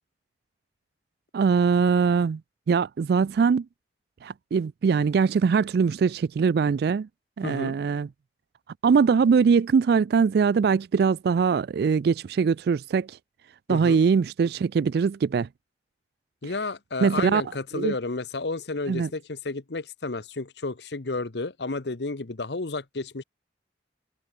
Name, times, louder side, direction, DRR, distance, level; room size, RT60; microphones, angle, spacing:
voice 1, 1.3-2.4 2.7-3.7 4.2-7.1 7.4-8.1 8.8-13.2 13.7-15.5 17.0-17.4 17.7-17.9 18.9-19.1, right 5 dB, 60° right, 0.3 m, -22 dB
voice 2, 7.4-7.8 13.7-14.0 16.4-23.2, left 3 dB, 70° left, 1.0 m, -31 dB
head